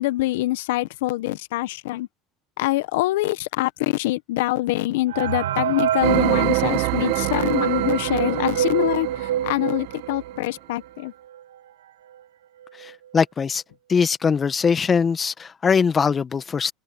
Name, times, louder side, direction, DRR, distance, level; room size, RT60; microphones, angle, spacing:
voice 1, 0.0-2.1 2.6-11.1, left 18 dB, 75° left, 1.3 m, -24 dB
sound 1, 5.1-10.5 11.0-11.1 11.3-11.4 12.1-12.2 12.6-12.9, right 11 dB, 85° right, 1.4 m, -27 dB
sound 2, 6.0-10.3, right 23 dB, 70° right, 1.4 m, -25 dB
voice 2, 12.8-13.6 13.9-16.7, left 6 dB, 30° left, 1.7 m, -21 dB
open air
hypercardioid pair, 80°, 0 cm